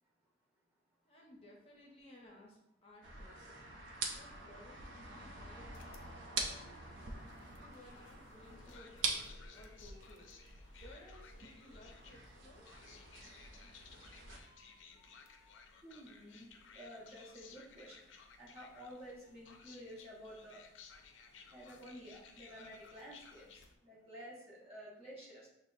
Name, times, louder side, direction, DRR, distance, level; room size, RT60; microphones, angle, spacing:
voice 1, 1.0-3.7 4.1-12.7, left 1 dB, 30° left, -2 dB, 0.6 m, -59 dB
sound 1, 3.0-14.4, right 3 dB, 90° right, 0.6 m, -45 dB
sound 2, 5.7-23.8, left 4 dB, 90° left, 0.4 m, -58 dB
voice 2, 15.8-18.1 18.4-20.6 21.5-23.5 23.8-25.5, equal, 35° right, -6 dB, 1.2 m, -52 dB
6.0 x 2.1 x 2.6 m, 0.83 s
head